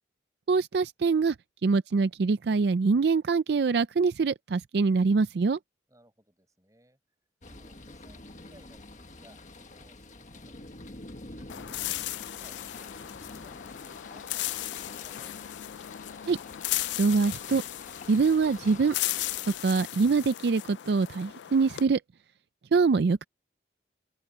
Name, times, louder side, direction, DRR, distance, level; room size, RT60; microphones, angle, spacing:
voice 1, 0.5-1.4 1.6-5.6 16.3-16.4 17.0-17.6 18.1-18.9 19.6-22.0 22.7-23.2, right 4 dB, 65° right, 0.4 m, -24 dB
voice 2, 5.9-7.0 7.4-10.9 11.3-15.4, right 1 dB, 20° right, 7.8 m, -61 dB
sound 1, 7.4-19.6, left 2 dB, 45° left, 1.6 m, -47 dB
sound 2, 11.5-21.8, left 15 dB, 80° left, 0.3 m, -36 dB
head